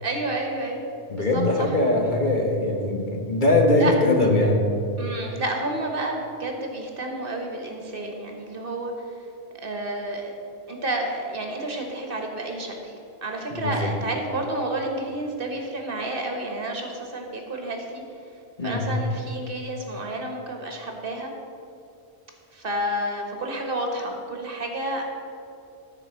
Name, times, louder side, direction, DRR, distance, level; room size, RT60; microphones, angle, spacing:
voice 1, 0.0-0.8 1.1-1.7 3.7-3.9 5.0-8.9 9.6-10.3 10.7-12.9 13.2-18.0 18.6-21.3 22.5-25.1, right 1 dB, 55° right, 2 dB, 1.6 m, -30 dB
voice 2, 1.1-4.6 13.5-13.9 18.6-18.9, left 2 dB, 45° left, 1 dB, 1.4 m, -21 dB
13.0 x 4.8 x 7.4 m, 2.7 s
omnidirectional pair, 1.1 m